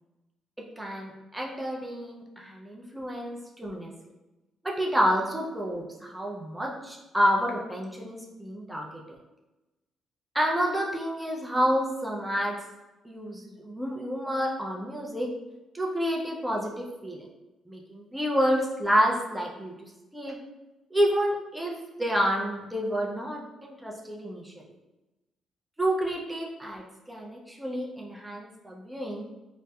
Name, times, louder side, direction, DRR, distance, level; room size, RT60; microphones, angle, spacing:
voice 1, 0.8-3.9 4.6-8.9 10.3-12.6 13.0-15.3 15.7-17.2 17.7-20.4 20.9-24.5 25.8-29.3, equal, 10° right, -2 dB, 0.4 m, -29 dB
2.6 x 2.0 x 2.2 m, 1.0 s
cardioid pair, 90°, 0 cm